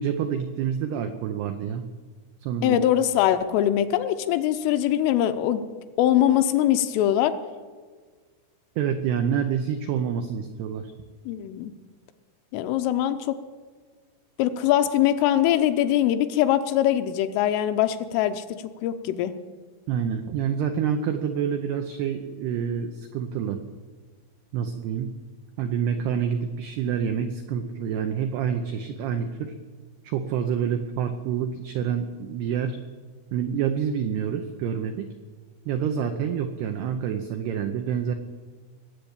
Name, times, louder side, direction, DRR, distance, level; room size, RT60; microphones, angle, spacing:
voice 1, 0.0-1.8 2.4-2.8 8.8-10.9 19.9-23.6 24.5-25.1 25.6-29.5 30.0-32.8 33.3-35.1 35.7-38.1, right 8 dB, 90° right, 6 dB, 2.3 m, -27 dB
voice 2, 2.6-5.6 6.0-7.4 11.3-11.7 12.5-13.4 14.4-18.4 18.8-19.3, left 11 dB, 80° left, 9 dB, 3.2 m, -22 dB
20.5 x 8.0 x 8.6 m, 1.5 s
omnidirectional pair, 5.9 m